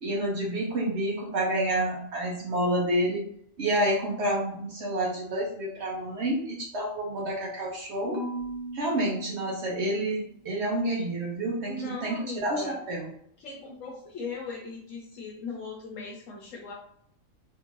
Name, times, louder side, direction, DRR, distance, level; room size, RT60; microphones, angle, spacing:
voice 1, 0.0-3.2 3.6-8.2 8.7-13.1, right 1 dB, 60° right, -3 dB, 1.0 m, -29 dB
Marimba xylophone / Wood, 8.1-10.3, right 1 dB, 35° right, 0.4 m, -39 dB
voice 2, 11.7-12.8 13.4-16.7, left 3 dB, 75° left, -1 dB, 1.0 m, -38 dB
3.6 x 2.5 x 3.0 m, 0.67 s
omnidirectional pair, 1.4 m